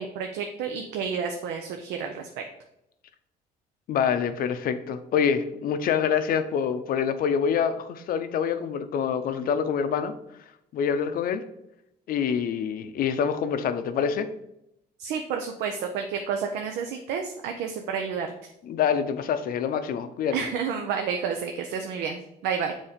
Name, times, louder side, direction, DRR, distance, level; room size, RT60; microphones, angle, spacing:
voice 1, 0.0-2.3 15.0-18.3 20.3-22.7, right 6 dB, 80° right, 4 dB, 0.6 m, -30 dB
voice 2, 3.9-10.1 10.7-11.4 12.1-14.3 18.6-20.5, left 7 dB, 60° left, 10 dB, 0.6 m, -26 dB
7.1 x 2.7 x 5.0 m, 0.83 s
cardioid pair, 110°, 17 cm